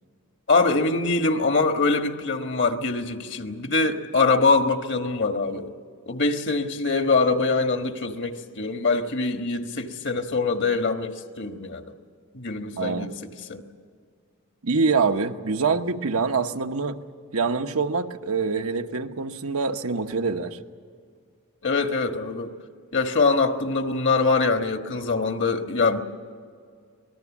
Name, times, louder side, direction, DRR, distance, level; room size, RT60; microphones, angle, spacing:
voice 1, 0.5-5.7 6.1-11.8 12.3-13.6 21.6-22.5 22.9-26.0, left 3 dB, 55° left, 6 dB, 1.5 m, -23 dB
voice 2, 12.8-13.1 14.6-17.0 17.3-20.6, right 4 dB, 75° right, 5 dB, 1.1 m, -25 dB
26.0 x 19.5 x 7.3 m, 2.1 s
head